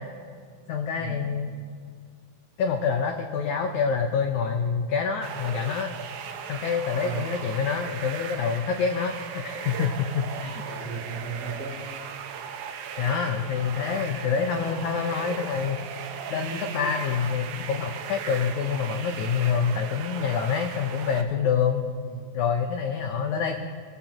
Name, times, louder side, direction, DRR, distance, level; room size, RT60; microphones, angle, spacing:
voice 1, 0.7-1.5 2.6-5.9 6.5-10.6 13.0-15.8 16.3-21.9 22.3-23.7, left 6 dB, 85° left, 4 dB, 1.7 m, -26 dB
sound 1, 5.2-21.2, right 7 dB, 70° right, 1.9 m, -37 dB
voice 2, 7.0-7.3 10.6-11.8 22.1-22.3, right 5 dB, 45° right, -5 dB, 5.5 m, -35 dB
27.0 x 15.0 x 2.9 m, 2.1 s
omnidirectional pair, 4.4 m